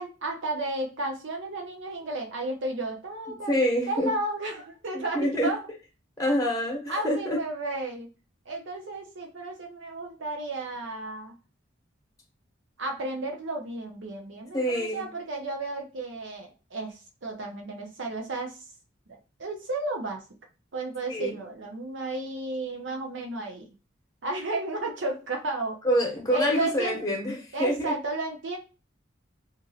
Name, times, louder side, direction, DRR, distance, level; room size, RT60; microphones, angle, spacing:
voice 1, 0.0-3.6 3.9-5.6 6.9-8.1 8.5-11.3 12.8-16.9 17.2-18.6 19.4-20.2 20.7-23.7 24.2-25.8 26.3-27.0 27.5-28.6, right 2 dB, 70° right, 2 dB, 0.7 m, -33 dB
voice 2, 3.5-4.1 4.9-5.5 6.2-7.4 14.5-15.1 21.1-21.4 25.8-27.9, equal, 15° left, -2 dB, 0.9 m, -26 dB
2.9 x 2.5 x 2.7 m, 0.32 s
head